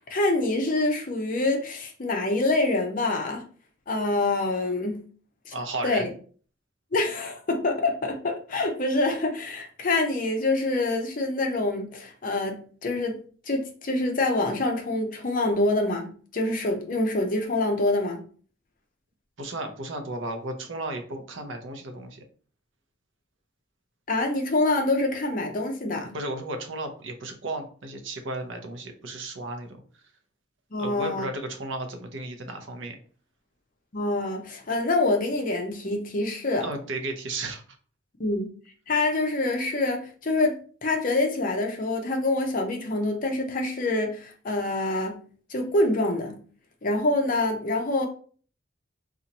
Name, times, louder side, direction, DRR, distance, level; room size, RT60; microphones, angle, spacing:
voice 1, 0.1-3.4 3.9-5.0 5.5-5.6 5.8-6.1 6.9-13.2 13.5-18.2 24.1-26.1 30.7-31.3 33.9-36.7 38.2-38.5 38.9-45.2 45.5-46.4 46.8-48.1, left 2 dB, 40° left, 3 dB, 0.6 m, -26 dB
voice 2, 5.5-6.1 19.4-22.2 26.1-29.8 30.8-33.0 36.6-37.6, right 2 dB, 65° right, 5 dB, 0.6 m, -34 dB
2.8 x 2.4 x 4.0 m, 0.43 s
head